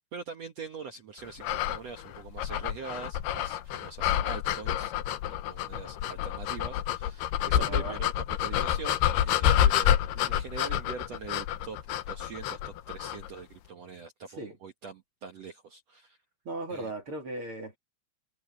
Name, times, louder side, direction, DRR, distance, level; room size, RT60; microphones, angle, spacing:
voice 1, 0.0-4.9 5.4-9.9 10.2-11.8 12.1-16.2 16.7-16.9, right 5 dB, 75° right, 1.5 m, -43 dB
sound 1, 1.4-13.3, left 11 dB, 70° left, 3.0 m, -28 dB
voice 2, 7.5-8.0 14.4-14.6 16.4-17.8, right 2 dB, 35° right, 2.9 m, -37 dB
omnidirectional pair, 5.1 m